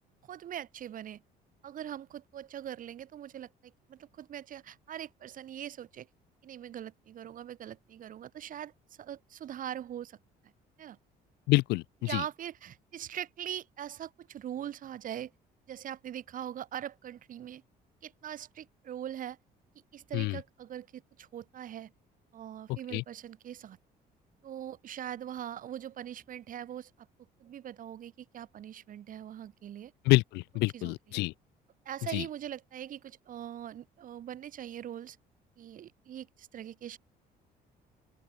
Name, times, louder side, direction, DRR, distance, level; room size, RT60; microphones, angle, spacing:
voice 1, 0.2-1.2 1.6-6.1 6.4-8.7 9.0-10.2 10.4-10.5 10.8-11.0 12.1-15.3 15.7-17.6 18.0-19.4 19.9-21.9 22.3-23.8 24.4-26.9 27.4-29.9 30.7-31.2 31.8-35.2 35.6-37.0, right 10 dB, 55° right, 1.6 m, -42 dB
voice 2, 11.5-11.8 12.1-12.2 20.1-20.4 22.7-23.0 30.1-31.3 32.1-32.2, left 22 dB, 85° left, 0.4 m, -27 dB
open air
cardioid pair, 110°, 17 cm